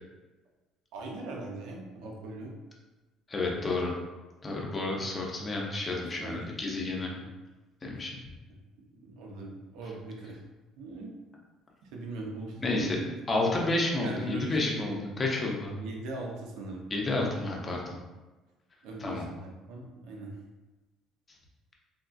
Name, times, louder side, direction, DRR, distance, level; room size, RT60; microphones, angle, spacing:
voice 1, 0.9-2.5 5.9-6.5 6.9-7.3 7.9-8.0 8.5-8.6 9.0-10.4 10.8-11.1 11.9-13.1 13.5-13.6 14.0-15.1 15.8-16.9 18.8-20.4, right 2 dB, 80° right, 0 dB, 0.6 m, -40 dB
voice 2, 3.3-3.9 4.4-7.1 7.8-8.1 12.6-13.0 13.3-15.7 16.9-17.9 19.0-19.2, left 2 dB, 20° left, -1 dB, 0.5 m, -30 dB
3.6 x 2.3 x 2.5 m, 1.2 s
cardioid pair, 160°, 0 cm